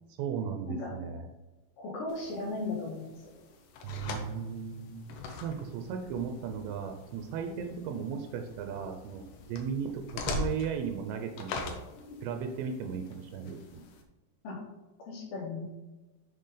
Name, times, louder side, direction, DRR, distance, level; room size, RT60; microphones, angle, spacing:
voice 1, 0.2-1.3 3.8-5.1 5.4-11.8 12.2-13.8, right 7 dB, 85° right, 5 dB, 3.0 m, -36 dB
voice 2, 1.8-3.1 7.5-7.6 12.0-12.1 14.4-14.6 15.0-15.6, left 3 dB, 60° left, -3 dB, 3.2 m, -36 dB
sound 1, 2.1-14.0, left 3 dB, 75° left, 1.9 m, -43 dB
6.9 x 6.6 x 3.9 m, 1.1 s
omnidirectional pair, 5.0 m